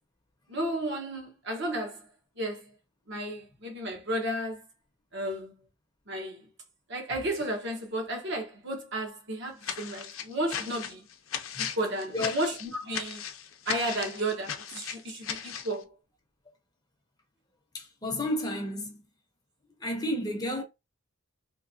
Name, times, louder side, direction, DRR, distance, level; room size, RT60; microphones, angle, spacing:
voice 1, 0.5-2.1 2.4-2.7 3.1-4.6 5.1-5.6 6.1-6.5 6.9-11.1 11.6-13.2 13.7-15.9, right 1 dB, 55° right, 1.1 m, -33 dB
sound 1, 9.6-15.7, left 8 dB, 70° left, 0.6 m, -37 dB
voice 2, 17.7-19.0 19.8-20.6, left 1 dB, 20° left, 0.8 m, -31 dB
3.4 x 2.9 x 2.7 m
head